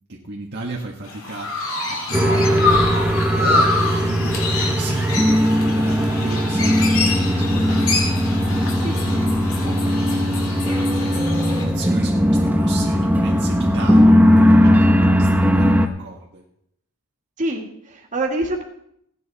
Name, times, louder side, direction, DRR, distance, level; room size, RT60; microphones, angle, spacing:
voice 1, 0.1-1.5 1.9-3.0 3.3-6.8 7.2-7.9 9.0-9.3 10.7-16.4, right 2 dB, 50° right, -1 dB, 1.4 m, -34 dB
Chirp tweet, 1.0-11.6, left 3 dB, 65° left, 2.9 m, -26 dB
sound 1, 2.1-15.9, equal, 10° right, 0.9 m, -18 dB
voice 2, 17.4-18.6, right 1 dB, 35° right, 0 dB, 2.1 m, -26 dB
16.5 x 9.7 x 4.2 m, 0.75 s
head